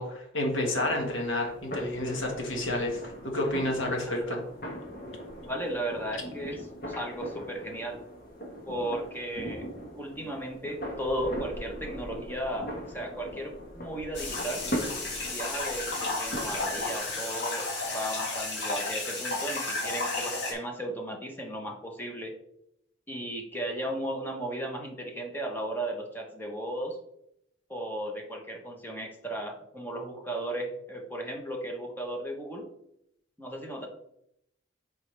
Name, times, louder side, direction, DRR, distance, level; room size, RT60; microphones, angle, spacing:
voice 1, 0.0-4.4, left 1 dB, 80° left, 1 dB, 1.6 m, -30 dB
sound 1, 0.6-17.0, equal, 45° left, 1.5 m, -40 dB
voice 2, 5.4-8.0 8.6-9.6 9.9-14.6 15.2-22.3 23.1-27.0 27.7-32.7 33.4-33.9, right 1 dB, 10° left, 1 dB, 1.1 m, -35 dB
sound 2, 14.1-20.5, left 3 dB, 60° left, 1.9 m, -33 dB
8.5 x 4.9 x 3.4 m, 0.76 s
head